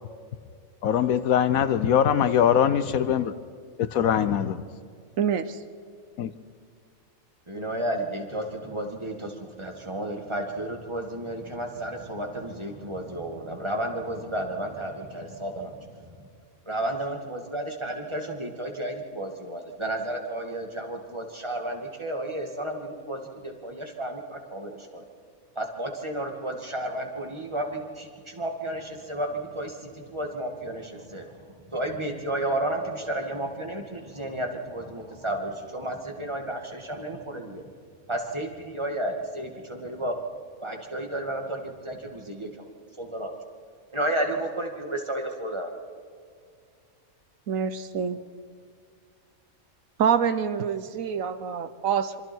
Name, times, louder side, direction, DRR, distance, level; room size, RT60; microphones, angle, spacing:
voice 1, 0.8-3.3 3.8-4.6 6.2-6.3, left 9 dB, 80° left, 13 dB, 1.2 m, -22 dB
voice 2, 5.2-5.6 47.5-48.2 50.0-52.2, right 7 dB, 70° right, 12 dB, 1.2 m, -26 dB
voice 3, 7.5-16.3 16.7-25.0 25.6-37.6 38.1-40.2 40.6-42.7 43.0-43.4 43.9-45.7, right 1 dB, 20° right, 3 dB, 2.1 m, -32 dB
26.0 x 24.5 x 4.6 m, 2.2 s
omnidirectional pair, 1.5 m